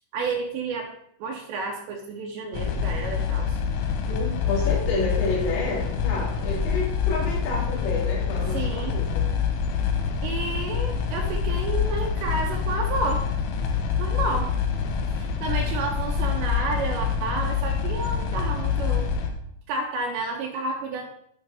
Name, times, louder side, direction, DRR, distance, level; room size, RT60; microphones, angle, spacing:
voice 1, 0.1-0.9 1.2-3.6 8.5-9.0 10.2-13.3 14.0-14.5 15.1-19.1 19.7-21.0, right 3 dB, 80° right, 1 dB, 2.8 m, -30 dB
sound 1, 2.5-19.3, left 7 dB, 85° left, 3.3 m, -26 dB
voice 2, 4.1-9.3, left 3 dB, 65° left, -4 dB, 4.0 m, -29 dB
9.4 x 6.2 x 3.4 m, 0.70 s
omnidirectional pair, 5.3 m